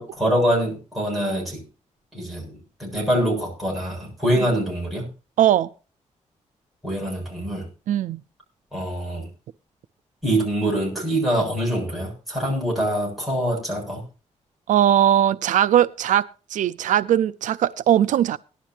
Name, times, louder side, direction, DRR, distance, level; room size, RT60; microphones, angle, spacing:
voice 1, 0.0-1.6 2.1-5.1 6.8-7.7 8.7-9.3 10.2-14.0, right 1 dB, ahead, 7.5 m, -24 dB
voice 2, 5.4-5.7 7.9-8.2 14.7-18.4, right 11 dB, 85° right, 0.5 m, -19 dB
18.5 x 12.0 x 2.9 m
wide cardioid pair, 175°, 13 cm